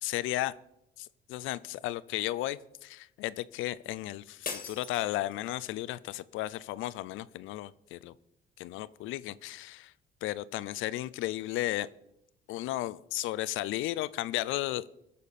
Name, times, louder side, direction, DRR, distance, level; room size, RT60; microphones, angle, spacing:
voice 1, 0.0-0.5 1.0-8.1 8.6-9.9 10.2-11.9 12.5-14.9, left 16 dB, 80° left, 17 dB, 0.5 m, -34 dB
sound 1, 4.4-5.7, left 6 dB, 45° left, 1.8 m, -41 dB
19.5 x 6.7 x 4.2 m, 0.83 s
cardioid pair, 85°, 20 cm